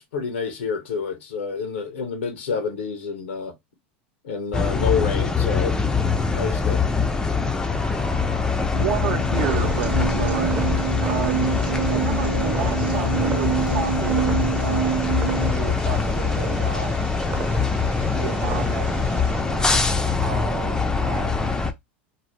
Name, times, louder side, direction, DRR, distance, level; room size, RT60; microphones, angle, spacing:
voice 1, 0.0-3.5 4.2-5.8 6.3-6.8, left 5 dB, 90° left, 0.8 m, -28 dB
sound 1, 4.5-21.7, left 4 dB, 10° left, 0.4 m, -23 dB
voice 2, 8.6-15.1 15.4-17.0 17.8-19.1 19.4-21.3, right 8 dB, 60° right, 0.7 m, -33 dB
sound 2, 8.7-15.5, right 9 dB, 85° right, 0.4 m, -27 dB
Purr, 9.3-19.4, right 5 dB, 40° right, 0.9 m, -36 dB
2.7 x 2.0 x 3.0 m
hypercardioid pair, 105°, 6 cm